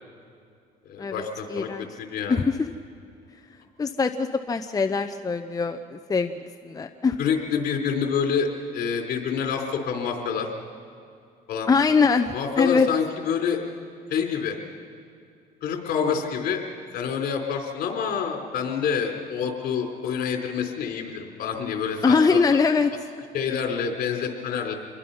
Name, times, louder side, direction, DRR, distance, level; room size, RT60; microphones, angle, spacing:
voice 1, 0.9-1.7 2.0-2.4 7.2-8.5 8.7-10.5 11.5-11.7 12.3-13.6 14.1-14.6 15.6-16.6 16.9-22.6 23.3-24.7, left 7 dB, 65° left, 2 dB, 3.9 m, -27 dB
voice 2, 1.5-1.9 2.3-2.7 3.8-6.3 6.6-7.2 11.7-12.9 22.0-22.9, left 5 dB, 20° left, 7 dB, 0.8 m, -22 dB
27.0 x 22.0 x 5.6 m, 2.4 s
cardioid pair, 110°, 17 cm